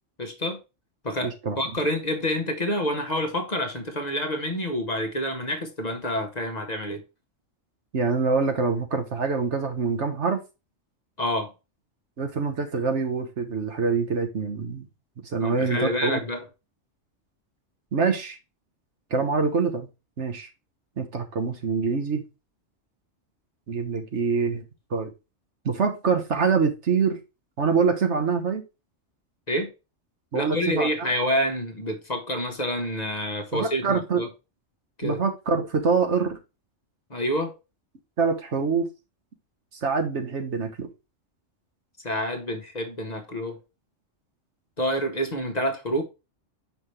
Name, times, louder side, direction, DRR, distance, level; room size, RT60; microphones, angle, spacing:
voice 1, 0.2-0.6 1.0-7.0 11.2-11.5 15.4-16.4 29.5-29.7 30.3-34.3 35.0-35.2 37.1-37.5 42.0-43.6 44.8-46.0, equal, 35° left, 1.1 m, -28 dB
voice 2, 1.2-1.6 7.9-10.4 12.2-14.9 15.2-16.2 17.9-18.4 19.1-19.9 20.2-20.5 21.0-22.2 23.7-24.6 24.9-25.1 25.6-27.2 27.6-28.6 30.3-31.1 33.5-34.2 35.0-36.4 38.2-38.9 39.8-40.9, right 5 dB, 65° right, 1.5 m, -25 dB
5.8 x 5.3 x 3.2 m
omnidirectional pair, 1.3 m